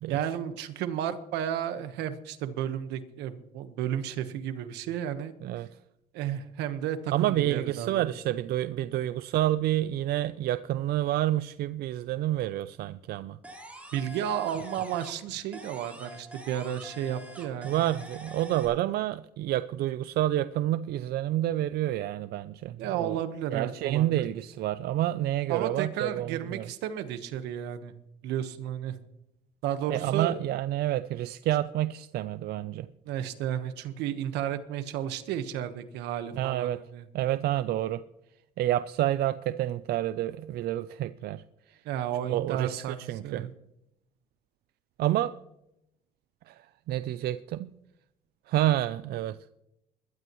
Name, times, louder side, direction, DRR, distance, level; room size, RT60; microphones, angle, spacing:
voice 1, 0.1-5.3 6.1-8.1 8.9-9.1 13.9-17.8 22.8-24.2 25.5-27.9 28.2-28.9 29.6-30.4 33.0-37.0 41.8-43.5, right 10 dB, 90° right, 10 dB, 1.3 m, -33 dB
voice 2, 7.1-13.4 17.6-23.2 23.5-26.7 29.9-32.9 36.4-36.8 37.1-38.0 38.6-41.4 42.3-43.5 45.0-45.3 46.5-46.6 46.9-47.7 48.5-49.4, right 13 dB, 70° right, 12 dB, 0.5 m, -28 dB
sound 1, 13.4-15.3 15.5-18.6, equal, 10° right, 4.0 m, -46 dB
21.0 x 12.5 x 3.1 m, 0.83 s
cardioid pair, 110°, 17 cm